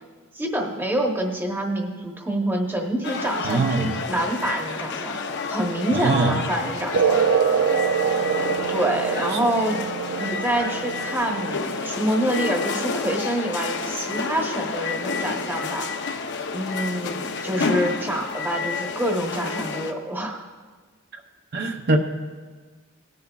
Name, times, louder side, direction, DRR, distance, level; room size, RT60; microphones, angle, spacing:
voice 1, 0.3-5.2 5.5-7.2 8.7-9.8 10.2-15.9 16.5-20.4, right 1 dB, 10° right, 1.1 m, -26 dB
sound 1, 3.0-19.9, left 4 dB, 55° left, 0.7 m, -30 dB
voice 2, 3.4-3.9 5.9-6.4 21.5-22.0, right 3 dB, 50° right, 0.7 m, -22 dB
sound 2, 6.9-13.9, right 7 dB, 80° right, 0.4 m, -25 dB
18.0 x 10.5 x 2.4 m
head